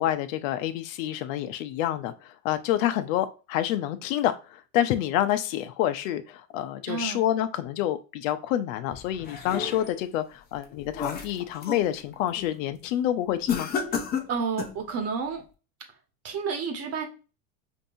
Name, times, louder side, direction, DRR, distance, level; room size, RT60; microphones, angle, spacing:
voice 1, 0.0-13.7, left 12 dB, 65° left, 10 dB, 0.7 m, -28 dB
voice 2, 6.9-7.2 14.3-15.4 16.2-17.1, right 5 dB, 35° right, 3 dB, 1.2 m, -30 dB
sound 1, 8.9-10.0 10.5-11.9 12.3-12.6 13.5-14.8, left 6 dB, 20° left, 0.6 m, -32 dB
5.3 x 2.7 x 2.6 m, 0.33 s
supercardioid pair, 125°, 43 cm